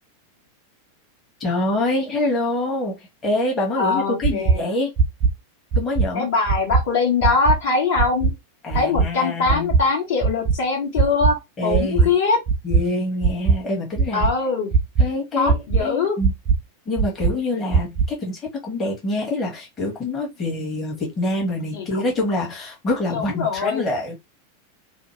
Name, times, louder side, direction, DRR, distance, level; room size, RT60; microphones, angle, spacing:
voice 1, 1.4-4.9 5.8-6.3 8.6-9.7 11.6-12.1 12.6-14.3 15.0-16.3 16.9-24.1, left 2 dB, 25° left, 1.3 m, -25 dB
voice 2, 3.7-4.7 6.1-8.3 8.7-12.4 14.1-14.7 15.4-16.2 21.7-22.0 23.1-23.9, left 4 dB, 55° left, 1.4 m, -22 dB
sound 1, 4.2-4.5 5.0-5.3 5.7-6.1 6.5-6.8 7.2-7.6 8.0-8.3 8.7-9.1 9.5-9.8 10.2-10.6 11.0-11.3 11.7-12.1 12.5-12.8 13.2-13.5 14.0-14.3 14.7-15.1 15.5-15.8 16.2-16.6 17.0-17.3 17.7-18.1, right 5 dB, 35° right, 0.6 m, -18 dB
2.8 x 2.0 x 3.1 m
figure-of-eight pair, 90°, 0 cm